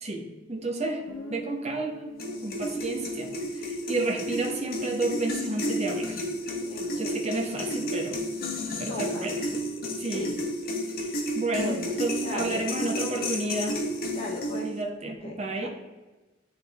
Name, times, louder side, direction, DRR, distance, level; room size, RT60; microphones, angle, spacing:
voice 1, 0.0-1.0 1.3-2.1 2.4-6.3 7.0-8.2 8.8-9.4 10.0-10.3 10.8-13.8 14.6-15.7, right 2 dB, 35° right, 2 dB, 1.0 m, -31 dB
Guitar, 1.1-5.6, right 1 dB, 85° left, 1.0 m, -46 dB
sound 1, 2.2-14.8, equal, 50° left, 1.2 m, -32 dB
voice 2, 6.6-7.1 8.9-9.2 10.1-10.3 11.4-11.9 12.2-12.7 14.1-14.7 15.2-15.7, left 2 dB, 30° left, -3 dB, 1.2 m, -37 dB
9.8 x 3.8 x 3.5 m, 1.2 s
head